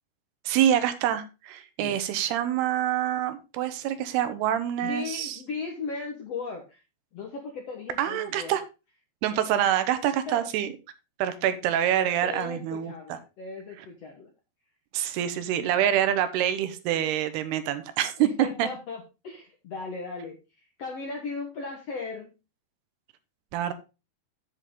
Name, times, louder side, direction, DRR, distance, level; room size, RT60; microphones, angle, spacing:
voice 1, 0.5-5.4 8.0-8.6 9.2-10.7 11.2-13.2 13.8-13.9 14.9-18.7 23.5-23.7, right 10 dB, 85° right, 11 dB, 2.9 m, -26 dB
voice 2, 4.8-6.8 7.1-8.6 10.3-10.4 12.2-14.3 18.2-20.4 20.8-22.3, left 4 dB, 65° left, 1 dB, 1.6 m, -37 dB
8.3 x 7.6 x 3.7 m, 0.29 s
omnidirectional pair, 4.6 m